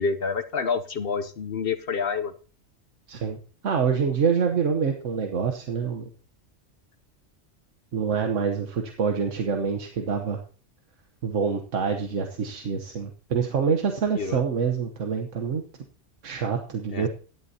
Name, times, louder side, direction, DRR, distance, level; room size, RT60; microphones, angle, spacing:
voice 1, 0.0-2.3 14.2-14.4 16.9-17.1, left 5 dB, 55° left, 9 dB, 0.8 m, -28 dB
voice 2, 3.1-3.4 3.6-6.0 7.9-10.4 11.2-15.6 16.2-17.1, right 6 dB, 90° right, 4 dB, 1.4 m, -26 dB
16.5 x 11.0 x 2.8 m, 0.39 s
omnidirectional pair, 1.2 m